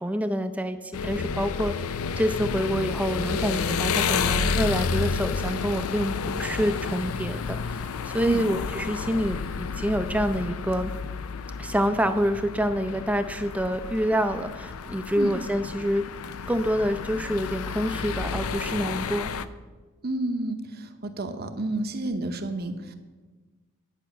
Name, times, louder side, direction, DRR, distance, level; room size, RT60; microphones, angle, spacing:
voice 1, 0.0-10.9 11.6-16.1 16.5-19.3, equal, 5° right, 9 dB, 0.5 m, -27 dB
sound 1, 0.9-19.5, left 5 dB, 75° left, 0.5 m, -30 dB
voice 2, 20.0-22.9, right 2 dB, 45° right, 7 dB, 0.9 m, -30 dB
10.0 x 5.9 x 8.5 m, 1.3 s
head